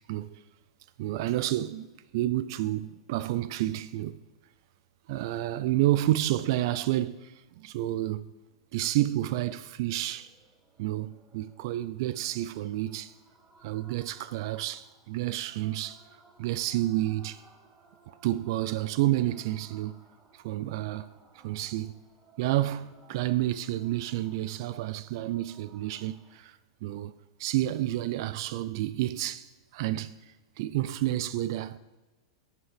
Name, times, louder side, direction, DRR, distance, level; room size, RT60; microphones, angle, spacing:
voice 1, 0.1-0.4 1.0-4.2 5.1-8.3 8.7-10.3 10.8-13.1 13.6-16.0 16.4-17.4 18.1-20.0 20.3-22.0 22.4-30.2 30.6-31.8, right 15 dB, 55° right, 0.5 m, -30 dB
sound 1, 9.9-26.4, right 3 dB, 20° right, 2.0 m, -61 dB
13.5 x 8.4 x 5.0 m
hypercardioid pair, 105°, 3 cm